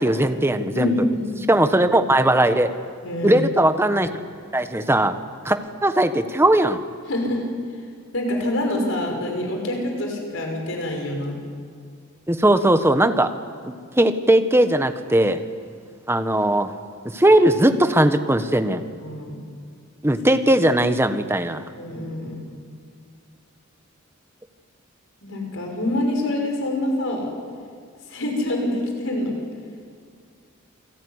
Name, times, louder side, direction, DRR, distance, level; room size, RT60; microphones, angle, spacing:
voice 1, 0.0-0.9 1.5-2.7 3.2-4.1 4.5-5.1 5.4-6.8 12.3-13.3 13.6-15.4 16.1-16.7 17.1-18.8 20.0-21.6, right 1 dB, 10° right, 8 dB, 1.3 m, -18 dB
voice 2, 0.7-1.4 3.0-3.5 7.1-7.4 8.1-11.4 19.0-19.4 21.7-22.5 25.2-27.3 28.1-29.4, left 1 dB, 70° left, 2 dB, 5.9 m, -26 dB
28.5 x 21.0 x 9.8 m, 2.1 s
head